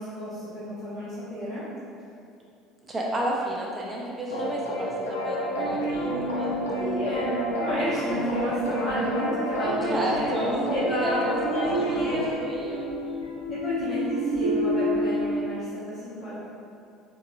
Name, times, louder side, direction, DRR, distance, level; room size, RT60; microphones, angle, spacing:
voice 1, 0.0-1.6 6.8-7.3 7.6-12.4 13.6-16.4, equal, 45° left, -14 dB, 1.0 m, -31 dB
voice 2, 2.9-6.9 9.9-13.2, right 1 dB, 25° right, -3 dB, 0.7 m, -32 dB
sound 1, 4.3-12.3, left 1 dB, 80° left, 0.4 m, -31 dB
sound 2, 5.5-15.4, right 1 dB, 85° right, 0.4 m, -30 dB
3.8 x 2.9 x 2.4 m, 2.6 s
figure-of-eight pair, 60°, 0 cm